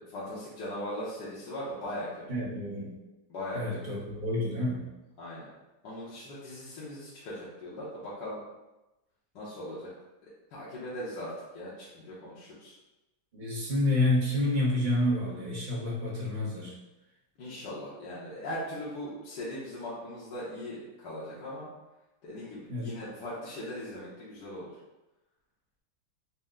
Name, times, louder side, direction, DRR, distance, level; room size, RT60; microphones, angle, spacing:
voice 1, 0.0-2.2 3.3-4.0 5.2-5.5 5.8-8.4 9.3-9.9 10.5-12.7 17.4-21.7 22.2-24.7, left 1 dB, 65° left, -9 dB, 1.4 m, -39 dB
voice 2, 2.3-2.9 3.5-4.8 13.3-16.7 22.7-22.9, left 1 dB, 40° right, -7 dB, 0.6 m, -29 dB
4.3 x 2.1 x 3.6 m, 1.0 s
omnidirectional pair, 2.1 m